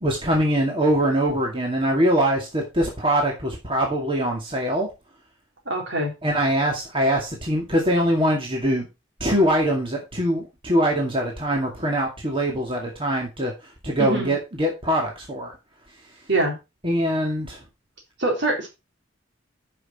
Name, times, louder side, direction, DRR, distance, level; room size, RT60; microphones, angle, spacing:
voice 1, 0.0-4.9 6.2-8.9 9.2-13.5 13.8-15.6 16.8-17.6, equal, 30° right, 0 dB, 2.3 m, -23 dB
voice 2, 5.7-6.1 14.0-14.3 16.3-16.6 18.2-18.7, right 2 dB, 60° right, 1 dB, 4.0 m, -24 dB
9.8 x 6.1 x 4.3 m, 0.25 s
head